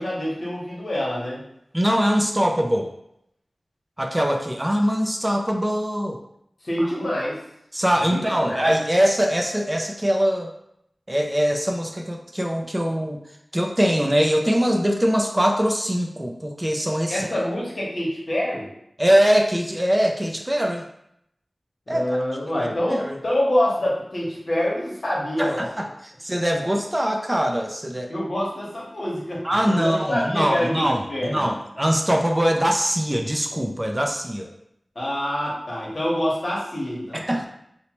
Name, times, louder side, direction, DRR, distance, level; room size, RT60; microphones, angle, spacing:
voice 1, 0.0-1.4 6.6-7.4 8.0-8.7 17.1-18.7 21.9-25.7 28.1-31.5 34.9-37.2, left 1 dB, 70° left, -5 dB, 0.9 m, -26 dB
voice 2, 1.7-2.9 4.0-6.2 6.8-6.9 7.7-10.5 11.1-13.2 13.5-17.3 19.0-20.8 21.9-22.1 22.9-23.2 25.4-28.1 29.4-34.5 37.1-37.5, equal, 20° right, 2 dB, 0.3 m, -22 dB
2.8 x 2.1 x 2.9 m, 0.76 s
wide cardioid pair, 45°, 0 cm